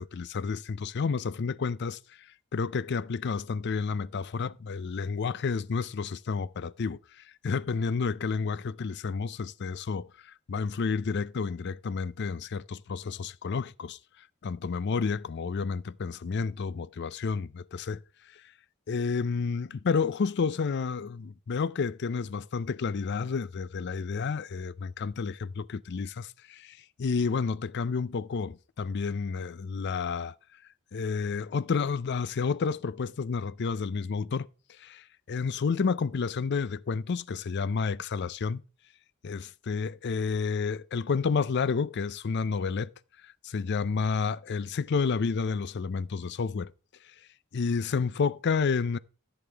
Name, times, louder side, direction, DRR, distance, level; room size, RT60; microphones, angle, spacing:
voice 1, 0.0-2.0 2.5-14.0 14.4-18.0 18.3-18.4 18.9-30.3 30.9-34.5 34.8-38.6 39.2-42.9 43.2-46.7 47.5-49.0, left 5 dB, 55° left, 0.4 m, -30 dB
14.5 x 7.9 x 3.4 m
head